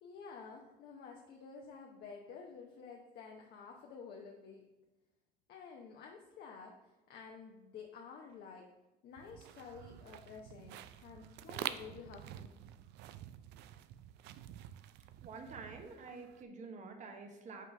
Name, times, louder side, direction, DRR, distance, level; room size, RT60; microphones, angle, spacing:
voice 1, 0.0-4.6 5.5-8.7 9.0-12.6, left 5 dB, 70° left, 0 dB, 0.8 m, -51 dB
some-steps-on-rocks, 9.2-16.4, right 12 dB, 85° right, 0.4 m, -48 dB
voice 2, 15.2-17.7, right 4 dB, 45° right, 4 dB, 1.0 m, -48 dB
5.5 x 4.0 x 5.2 m, 1.1 s
cardioid pair, 110°, 17 cm